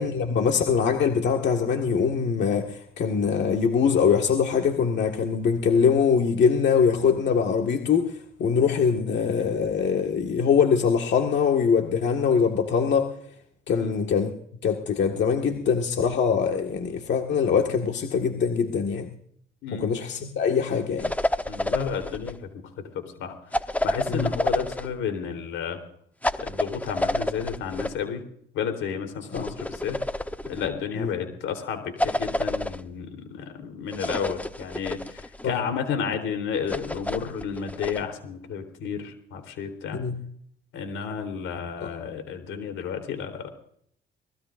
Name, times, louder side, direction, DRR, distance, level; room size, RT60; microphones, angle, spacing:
voice 1, 0.0-13.1 13.7-14.3 14.6-19.1 19.7-21.1 24.1-24.3 29.3-29.4 30.9-31.1 35.4-35.6 39.9-40.2 41.8-41.9, left 6 dB, 65° left, 2 dB, 1.8 m, -23 dB
voice 2, 13.7-14.0 19.6-20.0 21.5-22.5 22.8-22.9 23.2-23.3 23.8-25.8 26.4-28.2 28.5-30.0 30.5-40.0 40.7-43.5, left 7 dB, 90° left, 6 dB, 3.8 m, -32 dB
sound 1, 21.0-22.4 23.5-24.9 26.2-27.9 29.3-30.7 32.0-32.8 33.9-35.4 36.7-38.0, left 1 dB, 5° left, 1.0 m, -29 dB
23.0 x 19.0 x 2.6 m, 0.66 s
cardioid pair, 90°, 20 cm